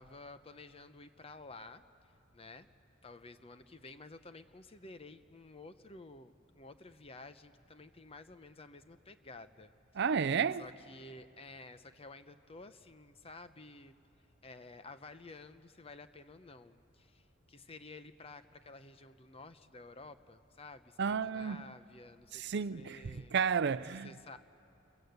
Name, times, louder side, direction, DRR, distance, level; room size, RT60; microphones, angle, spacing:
voice 1, 0.0-1.8 2.3-2.7 3.0-9.7 10.6-14.0 14.4-23.3 23.9-24.4, left 3 dB, 30° left, 0.8 m, -52 dB
voice 2, 9.9-10.7 21.0-21.6 22.3-24.1, right 6 dB, 60° right, 0.5 m, -32 dB
28.0 x 22.5 x 8.0 m
head